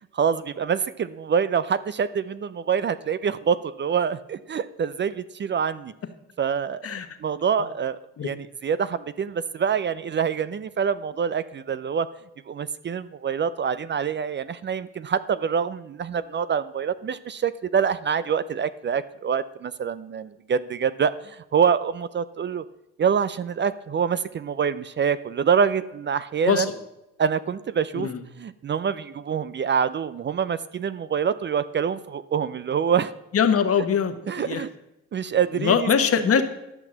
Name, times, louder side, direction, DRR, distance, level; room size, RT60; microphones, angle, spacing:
voice 1, 0.1-5.9 6.4-6.9 7.2-12.1 12.5-22.6 23.0-26.7 27.2-28.1 28.4-33.1 34.3-34.7 35.1-36.4, right 7 dB, 40° right, 15 dB, 0.5 m, -26 dB
voice 2, 33.3-34.6 35.6-36.4, left 7 dB, 50° left, 8 dB, 1.3 m, -22 dB
12.0 x 6.0 x 7.3 m, 0.91 s
cardioid pair, 90°, 30 cm